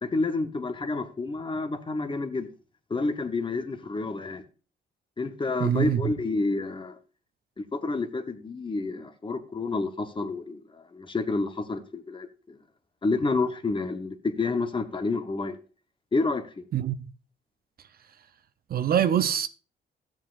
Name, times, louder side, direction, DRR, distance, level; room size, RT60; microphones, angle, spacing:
voice 1, 0.0-2.5 2.9-4.4 5.2-7.0 7.6-12.6 13.0-15.6 16.1-16.6, left 3 dB, 25° left, 0.9 m, -29 dB
voice 2, 5.6-6.1 16.7-17.0 18.7-19.5, right 10 dB, 50° right, 0.5 m, -24 dB
13.0 x 7.4 x 2.4 m
cardioid pair, 90°, 20 cm